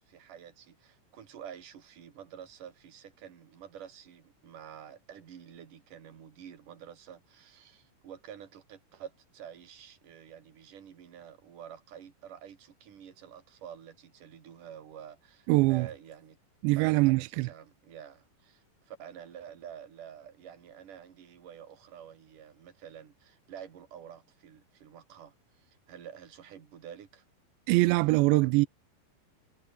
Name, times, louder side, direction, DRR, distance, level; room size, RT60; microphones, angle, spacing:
voice 1, 0.1-16.4 16.8-27.2, right 9 dB, 45° right, 3.9 m, -49 dB
voice 2, 15.5-15.9 16.6-17.5 27.7-28.7, right 23 dB, 90° right, 2.5 m, -23 dB
omnidirectional pair, 5.6 m